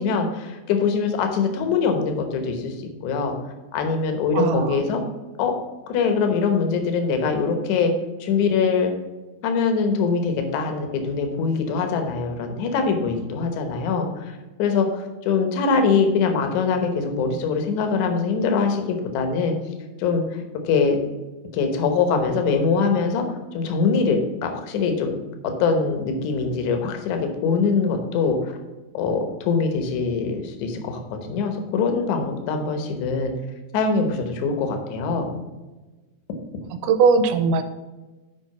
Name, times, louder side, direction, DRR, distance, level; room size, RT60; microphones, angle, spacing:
voice 1, 0.0-3.4 3.7-5.0 5.4-5.5 5.9-7.9 8.2-8.9 9.4-14.3 14.6-19.5 20.0-21.0 21.5-23.2 23.5-25.1 25.6-28.5 28.9-33.3 33.7-35.3, left 5 dB, 65° left, 5 dB, 2.0 m, -23 dB
voice 2, 4.3-4.8 36.8-37.6, right 5 dB, 85° right, 9 dB, 2.6 m, -19 dB
7.9 x 5.0 x 5.8 m, 1.2 s
omnidirectional pair, 4.6 m